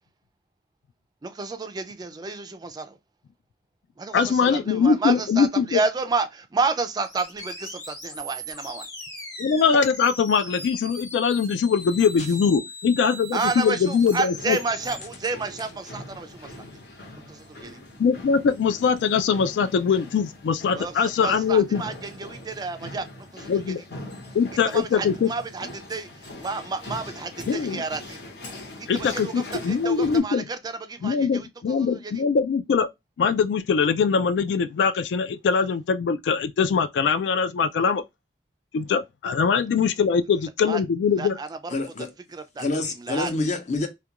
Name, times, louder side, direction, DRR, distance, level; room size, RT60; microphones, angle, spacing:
voice 1, 1.2-3.0 4.0-8.9 13.3-16.7 17.3-17.8 20.7-23.1 23.3-23.5 24.7-28.2 28.8-31.5 31.8-32.1 40.7-40.8 41.2-41.5 42.0-42.7 43.0-43.3, right 4 dB, 25° right, 0.3 m, -30 dB
voice 2, 4.1-5.8 9.4-14.6 18.0-21.8 23.5-23.8 24.3-25.3 27.5-27.8 28.9-30.4 31.0-32.9 33.2-38.0 38.7-41.4, left 6 dB, 80° left, 0.3 m, -22 dB
sound 1, 7.0-15.0, left 1 dB, 20° left, 0.9 m, -39 dB
sound 2, 14.4-30.2, left 1 dB, 65° left, 0.9 m, -42 dB
voice 3, 41.7-42.1 42.6-43.9, left 2 dB, 45° left, 0.6 m, -27 dB
2.4 x 2.2 x 2.8 m
head